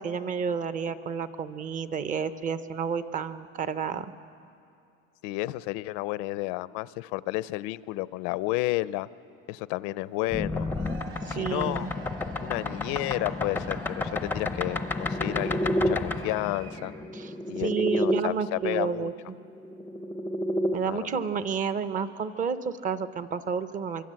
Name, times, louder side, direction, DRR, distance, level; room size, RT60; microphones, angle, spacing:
voice 1, 0.0-4.1 11.2-11.9 17.1-17.3 17.6-19.4 20.7-24.0, right 6 dB, 25° right, 12 dB, 0.8 m, -30 dB
voice 2, 5.2-9.1 9.5-10.7 11.3-11.9 12.4-16.9 17.5-19.1 20.8-21.2, left 18 dB, 70° left, 17 dB, 0.6 m, -31 dB
sound 1, 10.3-18.2 19.5-20.8, left 1 dB, 5° left, 0.6 m, -30 dB
Cheering / Crowd, 10.5-17.2, right 7 dB, 45° right, 1.9 m, -46 dB
25.0 x 24.0 x 7.6 m, 2.6 s
cardioid pair, 155°, 30 cm